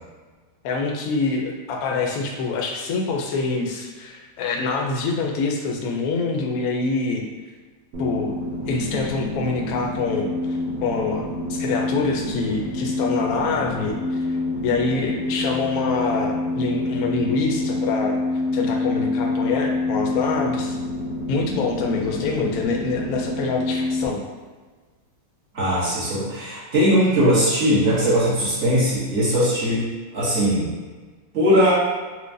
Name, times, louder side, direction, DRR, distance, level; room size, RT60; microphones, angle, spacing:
voice 1, 0.6-7.3 8.0-8.4 8.7-10.3 10.8-14.2 14.6-18.2 18.5-20.8 21.3-24.2, left 4 dB, 70° left, 0 dB, 0.9 m, -25 dB
sound 1, 7.9-24.1, left 2 dB, 80° right, 1.4 m, -27 dB
voice 2, 25.5-30.7 31.3-31.7, equal, 45° right, -9 dB, 1.2 m, -20 dB
4.5 x 2.1 x 2.6 m, 1.4 s
omnidirectional pair, 1.9 m